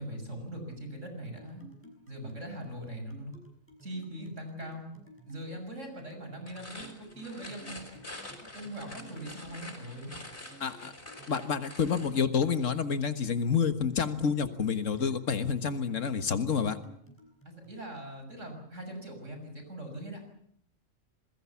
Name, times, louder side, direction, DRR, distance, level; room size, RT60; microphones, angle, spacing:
voice 1, 0.0-1.6 2.1-3.4 3.8-4.9 5.3-6.9 7.2-7.8 8.5-10.1 17.5-20.2, right 1 dB, 70° right, 5 dB, 7.1 m, -41 dB
sound 1, 1.3-17.8, right 2 dB, 10° left, 6.1 m, -55 dB
sound 2, 6.5-12.2, left 2 dB, 55° left, 5.8 m, -46 dB
voice 2, 10.6-10.9 11.3-16.8, left 6 dB, 75° left, 10 dB, 1.9 m, -28 dB
27.5 x 21.5 x 7.2 m, 0.65 s
omnidirectional pair, 1.3 m